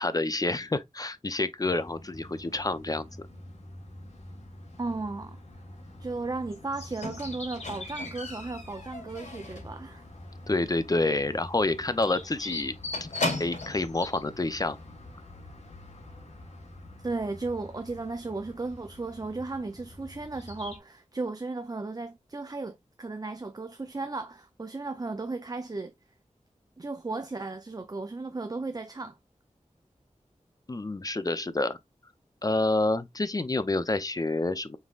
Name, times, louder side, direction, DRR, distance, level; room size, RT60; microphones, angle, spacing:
voice 1, 0.0-3.1 10.5-12.8 13.4-14.8 30.7-31.8 32.4-34.8, left 2 dB, 30° left, 0.6 m, -28 dB
sound 1, 1.7-20.8, left 2 dB, 60° left, 1.4 m, -45 dB
voice 2, 4.8-5.4 6.0-10.1 17.0-25.9 26.8-29.2, right 3 dB, 30° right, 0.5 m, -35 dB
Squeak, 7.0-9.8 10.1-10.5 10.8-10.9 11.3-11.4 11.6-11.8 12.0-13.9 14.7-14.8, left 2 dB, 75° left, 3.3 m, -36 dB
5.4 x 3.6 x 2.4 m
wide cardioid pair, 65°, 13 cm